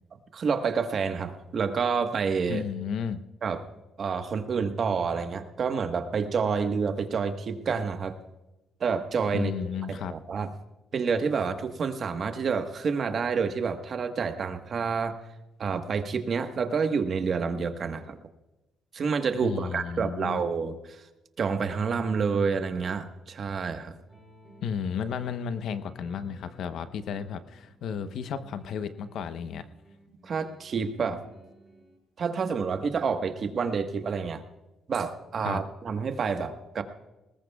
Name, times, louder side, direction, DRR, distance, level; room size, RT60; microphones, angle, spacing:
voice 1, 0.3-2.6 3.4-3.6 4.0-8.2 8.8-10.5 10.9-15.2 15.6-18.2 18.9-21.0 21.4-23.9 30.2-31.2 32.2-34.4 34.9-36.8, right 5 dB, 50° right, 7 dB, 1.3 m, -28 dB
voice 2, 2.5-3.2 9.3-10.1 19.4-20.4 24.6-29.6 35.4-35.6, left 7 dB, 75° left, 11 dB, 0.9 m, -33 dB
sound 1, 24.1-32.0, equal, 10° right, 6.1 m, -54 dB
20.5 x 19.0 x 2.4 m, 1.0 s
cardioid pair, 90°, 0 cm